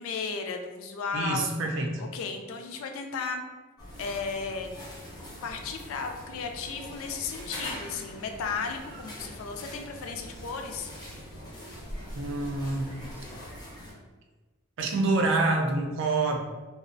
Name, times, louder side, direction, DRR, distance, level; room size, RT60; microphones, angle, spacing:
voice 1, 0.0-1.5 2.0-3.4 4.0-4.7 5.4-10.9, left 5 dB, 80° left, 4 dB, 0.3 m, -34 dB
voice 2, 1.1-2.0 12.1-12.9 14.8-16.5, right 3 dB, 60° right, 2 dB, 0.4 m, -27 dB
sound 1, 3.8-13.9, equal, 20° left, 0.5 m, -42 dB
2.4 x 2.0 x 2.5 m, 1.2 s
head